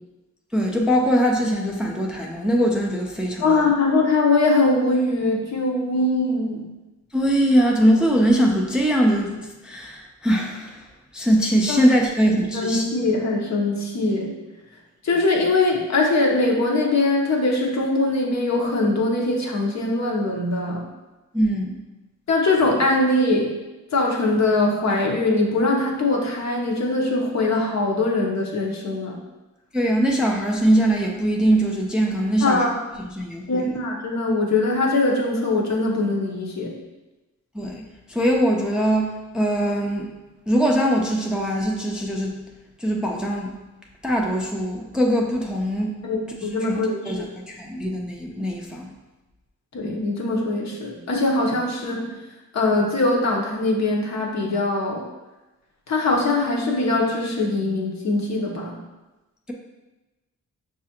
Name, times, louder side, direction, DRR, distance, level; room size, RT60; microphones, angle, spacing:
voice 1, 0.5-3.7 7.1-10.8 11.1-12.9 21.3-21.7 29.7-32.7 33.0-33.7 37.5-37.8 38.1-40.1 40.5-42.4 42.8-43.5 44.0-46.0 46.4-48.9, equal, 5° right, 0 dB, 0.4 m, -22 dB
voice 2, 3.4-6.7 11.7-11.8 12.2-14.3 15.0-20.9 22.3-23.5 23.9-29.2 32.4-32.7 33.5-36.7 46.0-47.3 49.7-52.2 52.5-55.0 55.9-58.8, left 2 dB, 60° left, -1 dB, 0.9 m, -22 dB
6.0 x 2.5 x 2.8 m, 1.1 s
cardioid pair, 95°, 32 cm